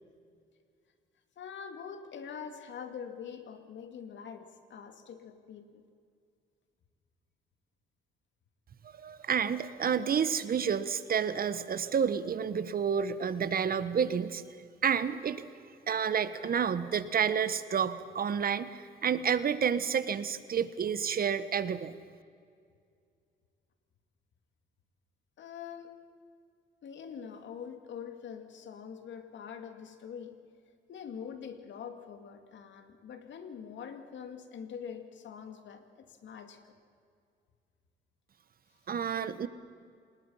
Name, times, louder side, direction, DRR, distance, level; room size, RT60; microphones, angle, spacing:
voice 1, 1.4-5.8 25.4-26.0 26.8-30.4 30.9-36.7, left 7 dB, 70° left, 7 dB, 2.4 m, -44 dB
voice 2, 9.0-14.4 14.8-15.4 15.9-21.9 38.9-39.5, right 7 dB, 50° right, 13 dB, 1.2 m, -30 dB
27.0 x 20.0 x 5.7 m, 2.3 s
cardioid pair, 90°, 20 cm